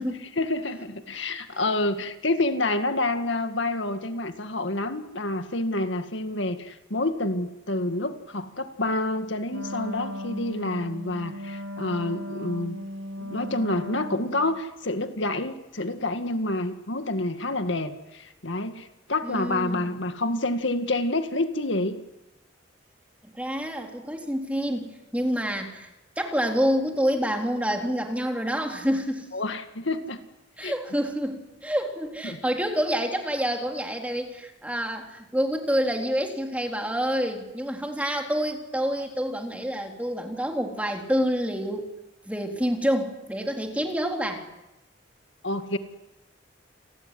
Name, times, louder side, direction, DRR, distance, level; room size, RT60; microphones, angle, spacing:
voice 1, 0.4-12.8 13.2-22.0 29.3-30.2 30.6-30.7 32.2-32.4 45.4-45.8, left 2 dB, 70° left, 8 dB, 2.0 m, -28 dB
Wind instrument woodwind instrument, 9.5-14.6, left 1 dB, 85° right, 2.3 m, -37 dB
voice 2, 19.2-20.0 23.3-25.9 26.2-29.3 30.6-41.9 42.3-44.4, equal, 5° right, 3 dB, 3.8 m, -27 dB
29.5 x 20.5 x 9.9 m, 0.97 s
head